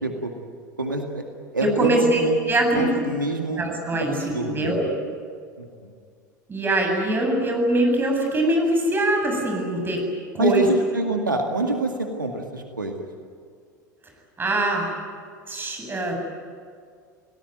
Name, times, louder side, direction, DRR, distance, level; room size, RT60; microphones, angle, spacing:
voice 1, 0.0-0.3 0.8-1.2 1.5-2.4 2.8-3.7 4.0-4.8 5.6-5.9 10.4-13.0, right 2 dB, 90° right, 3 dB, 2.1 m, -26 dB
voice 2, 1.6-3.0 3.5-4.9 6.5-10.0 10.3-10.7 14.4-14.9 15.5-16.2, right 1 dB, 20° right, 2 dB, 7.8 m, -23 dB
30.0 x 18.5 x 9.3 m, 2.1 s
figure-of-eight pair, 80°, 10 cm